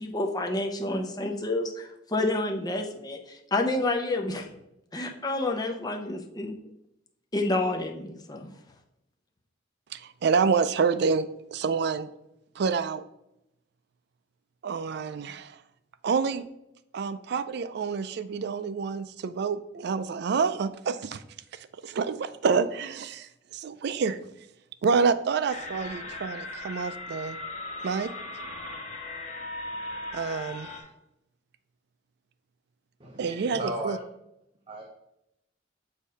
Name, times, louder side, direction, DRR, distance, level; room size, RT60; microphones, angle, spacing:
voice 1, 0.0-4.5 4.9-6.5 7.3-8.5, left 2 dB, 20° left, 3 dB, 0.7 m, -29 dB
voice 2, 10.2-12.1 12.6-13.0 14.6-15.5 16.0-16.5 16.9-21.2 21.8-23.3 23.5-24.2 24.8-27.4 27.8-28.1 30.1-30.7 33.2-33.6 33.8-34.0, right 5 dB, 60° right, 13 dB, 0.4 m, -27 dB
sound 1, 25.5-30.8, left 2 dB, 40° left, 1.1 m, -38 dB
voice 3, 33.0-34.0 34.7-34.8, right 1 dB, 30° right, 0 dB, 0.7 m, -35 dB
6.5 x 2.7 x 5.4 m, 0.83 s
head